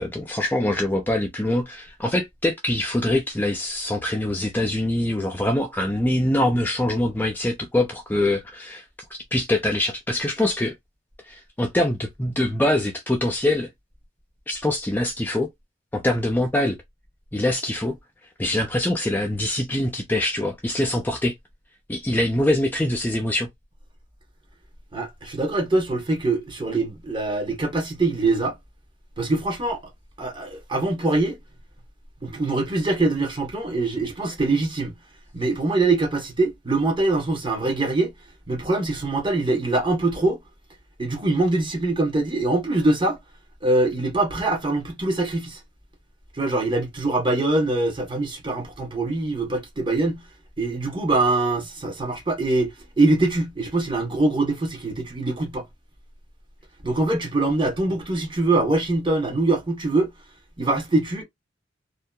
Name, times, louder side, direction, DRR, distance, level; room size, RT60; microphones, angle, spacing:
voice 1, 0.0-8.8 9.3-10.7 11.2-13.7 14.5-15.5 15.9-16.8 17.3-18.0 18.4-21.3 21.9-23.5, left 1 dB, 10° left, 0.3 m, -24 dB
voice 2, 24.9-28.5 29.2-29.8 30.2-31.4 32.2-34.9 35.3-38.1 38.5-40.4 41.0-43.2 43.6-45.6 46.3-50.2 50.6-52.7 53.0-55.6 56.8-60.1 60.6-61.2, right 2 dB, 25° right, 0.8 m, -23 dB
2.6 x 2.2 x 2.2 m
head